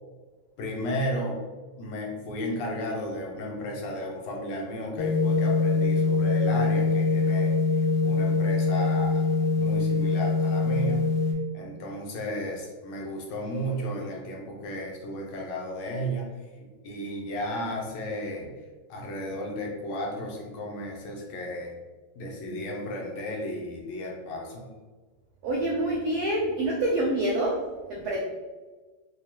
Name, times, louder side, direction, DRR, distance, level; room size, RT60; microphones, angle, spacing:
voice 1, 0.6-1.4 1.8-9.3 9.6-11.0 11.5-16.3 16.8-18.5 18.9-21.7 22.2-24.7, equal, 85° left, -1 dB, 1.6 m, -34 dB
sound 1, 5.0-11.3, left 3 dB, 65° left, 1.1 m, -24 dB
voice 2, 25.4-27.6 27.9-28.2, right 1 dB, 85° right, -3 dB, 0.8 m, -26 dB
4.7 x 2.3 x 2.8 m, 1.3 s
omnidirectional pair, 2.3 m